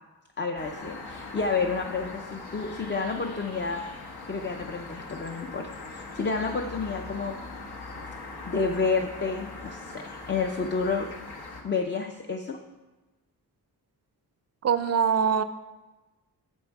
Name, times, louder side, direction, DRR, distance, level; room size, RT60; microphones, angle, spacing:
voice 1, 0.4-3.8 4.3-7.4 8.5-11.1 11.6-12.6, left 4 dB, 30° left, 3 dB, 0.5 m, -30 dB
sound 1, 0.6-11.6, left 3 dB, 70° left, 1.2 m, -41 dB
voice 2, 14.6-15.4, right 7 dB, 40° right, 12 dB, 0.5 m, -23 dB
8.5 x 7.2 x 4.6 m, 1.1 s
wide cardioid pair, 150°, 39 cm